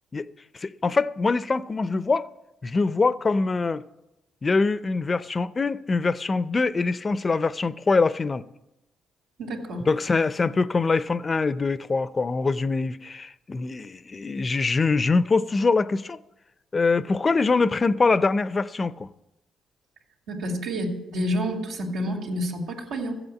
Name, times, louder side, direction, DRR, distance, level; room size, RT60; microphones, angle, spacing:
voice 1, 0.5-2.2 2.6-3.8 4.4-8.4 9.9-16.2 16.7-19.1, left 4 dB, 30° left, 0.6 m, -23 dB
voice 2, 9.4-9.9 20.3-23.2, equal, 90° right, 2.8 m, -29 dB
14.5 x 8.1 x 8.3 m
cardioid pair, 90°, 0 cm